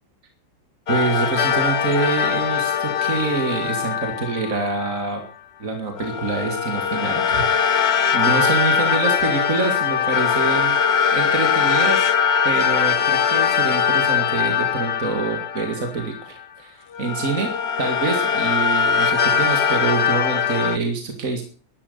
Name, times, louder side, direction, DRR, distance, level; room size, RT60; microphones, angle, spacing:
sound 1, 0.9-5.1 6.0-16.4 16.9-20.8, left 7 dB, 50° left, 1.0 m, -21 dB
voice 1, 0.9-5.2 5.6-7.5 7.8-10.8 11.1-12.1 12.4-17.5 17.8-21.4, right 4 dB, 55° right, 4 dB, 2.5 m, -26 dB
13.0 x 11.0 x 6.7 m, 0.42 s
omnidirectional pair, 1.7 m